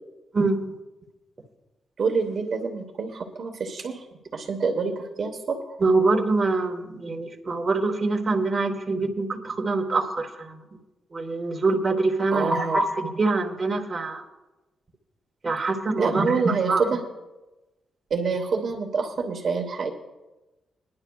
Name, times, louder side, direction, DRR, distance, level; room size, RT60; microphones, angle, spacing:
voice 1, 2.0-4.1 4.3-5.8 12.3-12.8 16.0-17.0 18.1-19.9, right 5 dB, 45° right, 3 dB, 1.1 m, -26 dB
voice 2, 5.8-10.6 11.1-14.2 15.4-16.8, right 3 dB, 25° right, 0 dB, 1.3 m, -24 dB
22.0 x 10.5 x 2.3 m, 1.1 s
wide cardioid pair, 170°, 0 cm